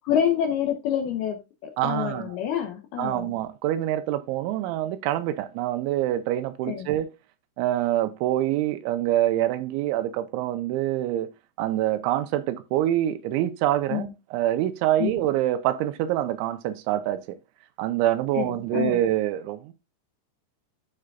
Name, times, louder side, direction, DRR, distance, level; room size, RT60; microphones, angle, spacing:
voice 1, 0.1-1.4 1.8-3.3 6.7-6.9 13.9-14.1 15.0-15.1 18.3-19.0, left 9 dB, 80° left, 2.3 m, -27 dB
voice 2, 1.8-2.3 3.0-7.1 7.6-11.3 11.6-17.4 17.8-19.7, right 13 dB, 80° right, 2.9 m, -26 dB
14.0 x 4.9 x 2.3 m
omnidirectional pair, 5.5 m